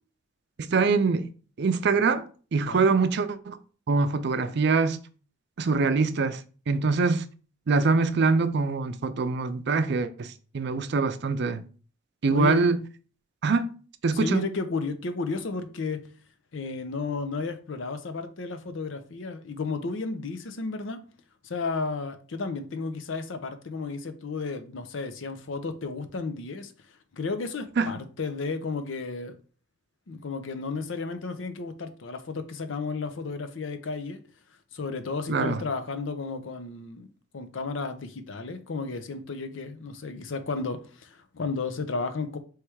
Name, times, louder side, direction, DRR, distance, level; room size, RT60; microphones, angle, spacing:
voice 1, 0.7-1.3 1.6-3.6 3.9-5.0 5.6-6.4 6.7-7.3 7.7-11.6 12.2-12.8 13.4-13.7 14.0-14.4 27.8-27.9 35.3-35.6, right 4 dB, 60° right, 0.4 m, -24 dB
voice 2, 2.6-2.9 12.3-12.6 14.1-16.0 16.5-21.0 21.4-29.4 30.1-34.2 34.7-42.4, left 4 dB, 75° left, 0.6 m, -33 dB
3.4 x 3.1 x 4.6 m
head